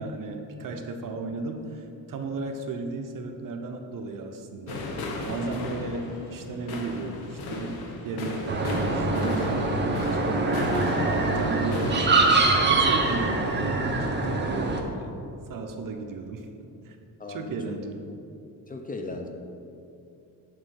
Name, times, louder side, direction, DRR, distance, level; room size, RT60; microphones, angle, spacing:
voice 1, 0.0-4.8 5.2-10.3 10.8-15.1 15.5-17.0 17.3-18.1, right 3 dB, 60° right, 5 dB, 0.8 m, -35 dB
Fire Crackers, 4.7-12.1, left 2 dB, 85° left, 1.0 m, -35 dB
sound 1, 8.5-14.8, right 3 dB, 30° right, 0.8 m, -24 dB
voice 2, 17.2-17.8 18.7-19.3, left 3 dB, 25° left, 3 dB, 0.6 m, -37 dB
6.6 x 3.7 x 6.3 m, 2.6 s
cardioid pair, 110°, 37 cm